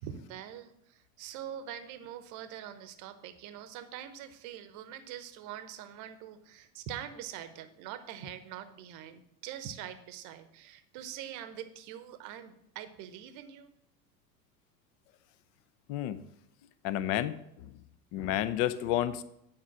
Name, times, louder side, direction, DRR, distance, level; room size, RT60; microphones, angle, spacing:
voice 1, 0.0-13.7, right 10 dB, 35° right, 11 dB, 0.9 m, -44 dB
voice 2, 16.8-17.7 18.1-19.2, left 12 dB, 30° left, 14 dB, 0.5 m, -31 dB
9.5 x 5.0 x 5.8 m, 0.80 s
figure-of-eight pair, 85°, 50 cm